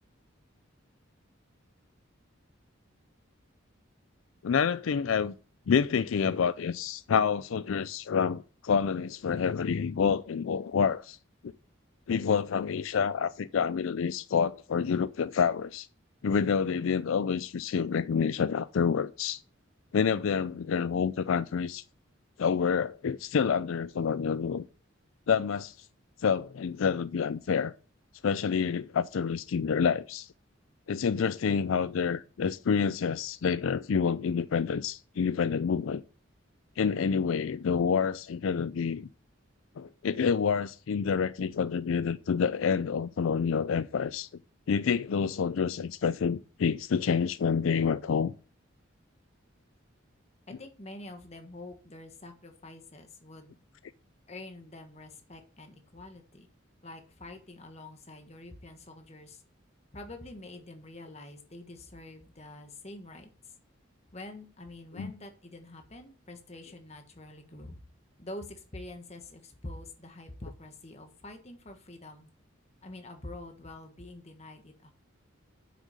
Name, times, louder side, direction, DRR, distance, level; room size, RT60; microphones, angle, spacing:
voice 1, 4.4-5.3 5.7-11.2 12.1-15.9 16.2-19.4 19.9-21.8 22.4-24.6 25.3-25.7 26.2-27.7 28.2-30.3 30.9-36.0 36.8-39.1 39.8-44.3 44.7-48.3 65.0-65.1, left 6 dB, 80° left, 0.4 m, -28 dB
voice 2, 50.5-53.6 54.3-56.5 56.8-59.4 59.9-63.5 64.1-67.8 68.2-72.3 72.8-74.9, left 2 dB, 30° left, 1.4 m, -46 dB
7.6 x 6.4 x 6.7 m
head